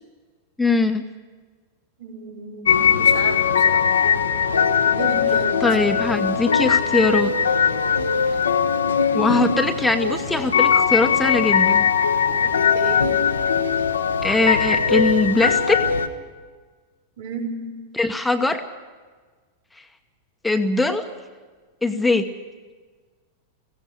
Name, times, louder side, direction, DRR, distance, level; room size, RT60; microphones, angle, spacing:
voice 1, 0.6-1.0 5.6-7.3 9.1-11.9 14.2-15.8 17.9-18.6 20.4-21.1 21.8-22.3, left 3 dB, 5° left, 6 dB, 1.1 m, -21 dB
voice 2, 2.0-3.8 4.8-5.6 12.4-13.1 17.2-17.7, right 4 dB, 70° right, -2 dB, 4.6 m, -33 dB
sound 1, 2.7-16.1, left 7 dB, 75° left, 1.1 m, -20 dB
16.5 x 16.5 x 10.0 m, 1.4 s
figure-of-eight pair, 90°, 0 cm